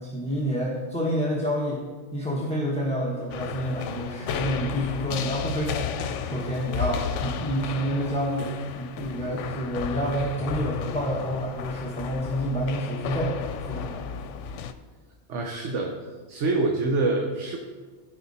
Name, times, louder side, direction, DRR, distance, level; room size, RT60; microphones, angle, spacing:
voice 1, 0.0-1.8 2.1-6.0 6.2-13.3 13.7-14.1, equal, 5° left, -4 dB, 1.2 m, -28 dB
sound 1, 3.3-14.7, left 7 dB, 85° left, 0.9 m, -33 dB
voice 2, 15.3-15.9 16.3-17.6, right 3 dB, 80° right, 2 dB, 1.2 m, -25 dB
14.5 x 4.9 x 4.2 m, 1.5 s
omnidirectional pair, 1.2 m